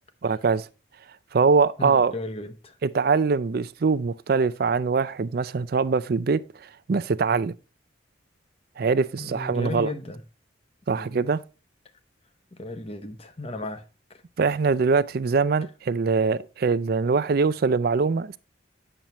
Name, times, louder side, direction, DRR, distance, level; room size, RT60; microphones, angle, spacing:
voice 1, 0.2-0.7 1.3-2.1 2.8-6.4 6.9-7.5 8.8-9.9 10.9-11.4 14.4-18.4, right 4 dB, 55° right, 0.4 m, -23 dB
voice 2, 1.8-2.8 9.2-10.2 10.9-11.2 12.5-13.8 14.1-14.2, left 1 dB, 30° left, 0.8 m, -35 dB
8.8 x 6.8 x 3.0 m
head